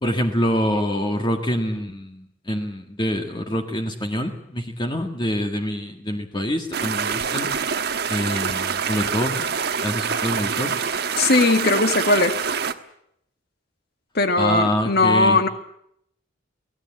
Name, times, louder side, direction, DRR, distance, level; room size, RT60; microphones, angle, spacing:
voice 1, 0.0-7.5 8.1-9.5 9.8-10.7 14.4-15.4, equal, 25° left, 3 dB, 1.8 m, -25 dB
sound 1, 6.7-12.7, right 6 dB, 60° right, 1.3 m, -25 dB
voice 2, 11.2-12.4 14.2-15.5, left 2 dB, 55° left, 8 dB, 1.9 m, -19 dB
23.5 x 18.0 x 8.8 m, 0.74 s
head